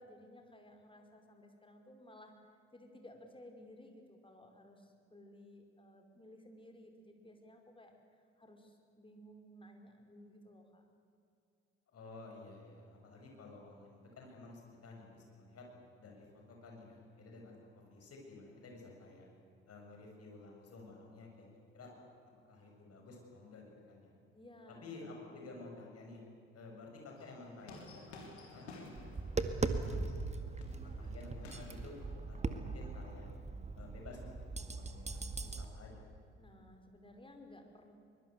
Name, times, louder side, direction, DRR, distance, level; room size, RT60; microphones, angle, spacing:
voice 1, 0.0-2.3 2.7-7.9 8.4-10.8 24.3-25.5 36.4-37.9, left 1 dB, 15° left, 3 dB, 5.0 m, -57 dB
voice 2, 11.9-15.7 16.0-17.6 17.9-19.3 19.7-21.5 21.7-21.9 22.5-24.2 24.7-26.2 26.5-31.9 32.3-33.3 33.8-36.1, left 3 dB, 45° left, 0 dB, 7.7 m, -53 dB
sound 1, 27.2-32.2, left 2 dB, 80° left, 3.4 m, -54 dB
Tap, 29.0-35.6, right 3 dB, 20° right, 1.9 m, -39 dB
23.5 x 22.0 x 8.2 m, 2.6 s
figure-of-eight pair, 50°, 32 cm